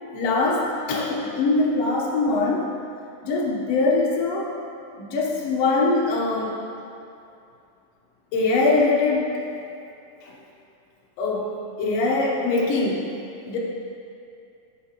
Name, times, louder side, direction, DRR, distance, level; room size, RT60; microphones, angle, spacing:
voice 1, 0.1-2.7 3.2-4.5 4.9-6.6 8.3-9.3 10.2-10.3 11.2-13.1 13.5-13.6, left 3 dB, 65° left, -3 dB, 1.6 m, -22 dB
9.9 x 6.6 x 3.0 m, 2.6 s
omnidirectional pair, 4.0 m